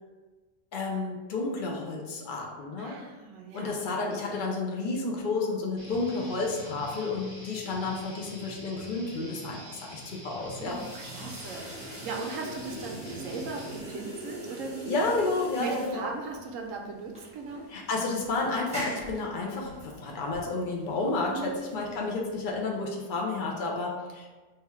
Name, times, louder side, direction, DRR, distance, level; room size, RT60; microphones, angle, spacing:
voice 1, 0.7-3.0 3.5-10.8 14.9-16.1 17.7-24.3, left 3 dB, 65° left, -1 dB, 0.4 m, -31 dB
voice 2, 2.8-3.8 10.6-15.0 15.6-17.6 21.3-21.6, right 4 dB, 65° right, 1 dB, 0.9 m, -38 dB
Guitar, 5.8-13.8, equal, 25° left, 0.8 m, -45 dB
sound 1, 10.4-22.8, equal, 5° right, 0.6 m, -42 dB
3.3 x 2.3 x 4.2 m, 1.3 s
omnidirectional pair, 1.6 m